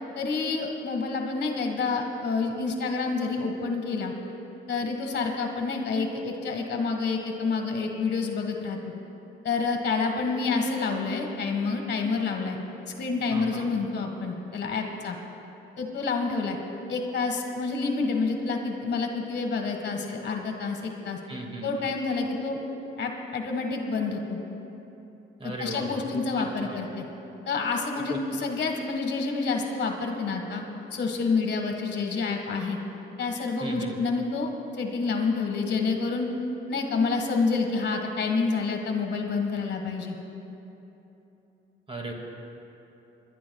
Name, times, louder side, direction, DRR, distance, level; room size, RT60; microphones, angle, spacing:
voice 1, 0.1-4.1 4.7-8.8 9.4-12.6 13.0-15.2 15.8-16.6 16.9-21.2 21.6-22.6 23.0-24.4 25.4-27.0 27.4-30.6 30.9-32.8 33.2-34.5 34.8-36.3 36.7-40.1, left 4 dB, 60° left, 3 dB, 1.7 m, -28 dB
voice 2, 13.3-13.7 21.3-21.9 25.4-26.8 28.1-28.5 33.6-34.0 41.9-42.1, right 2 dB, 30° right, 1 dB, 2.1 m, -37 dB
28.5 x 12.0 x 2.4 m, 3.0 s
cardioid pair, 90°, 20 cm